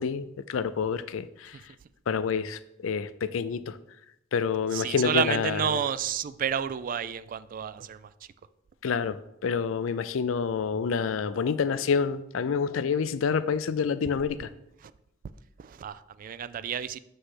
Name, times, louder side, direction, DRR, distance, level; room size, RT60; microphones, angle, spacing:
voice 1, 0.0-1.7 2.1-3.8 4.3-5.8 8.8-14.5, left 6 dB, 90° left, 14 dB, 0.4 m, -28 dB
voice 2, 4.7-8.3 14.8-14.9 15.6-17.0, right 8 dB, 45° right, 15 dB, 0.3 m, -30 dB
7.8 x 3.3 x 6.0 m, 0.84 s
head